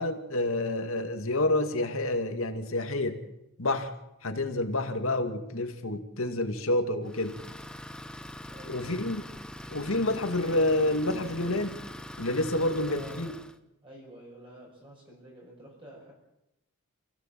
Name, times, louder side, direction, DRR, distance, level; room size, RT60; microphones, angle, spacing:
voice 1, 0.0-3.2 3.6-3.9 4.2-7.4 8.7-9.2 9.7-11.8 12.2-13.3, left 2 dB, 65° left, 6 dB, 2.3 m, -28 dB
Idling, 7.0-13.6, left 1 dB, 5° left, 1.0 m, -43 dB
voice 2, 8.5-8.9 12.5-13.4 13.8-16.1, right 1 dB, 25° right, -3 dB, 6.6 m, -49 dB
28.5 x 16.5 x 7.6 m, 0.90 s
head